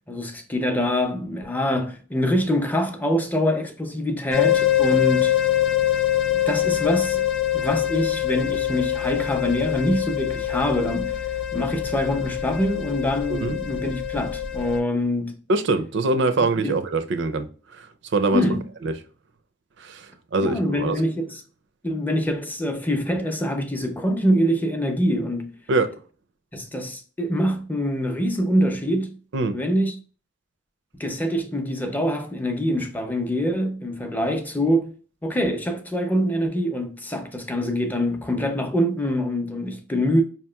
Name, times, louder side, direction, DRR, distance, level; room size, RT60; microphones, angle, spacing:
voice 1, 0.1-5.4 6.3-7.2 7.5-11.3 11.5-15.4 16.4-16.7 18.3-18.6 20.4-21.4 21.8-25.6 26.5-29.2 29.5-30.0 31.0-34.9 35.2-40.2, equal, 10° left, 0.5 m, -24 dB
sound 1, 4.3-14.8, left 12 dB, 70° left, 0.5 m, -24 dB
voice 2, 15.5-17.5 17.7-17.9 18.1-18.4 18.8-18.9 19.8-21.0 25.7-25.9 29.3-29.6, right 3 dB, 65° right, 0.5 m, -23 dB
4.8 x 2.9 x 2.2 m
head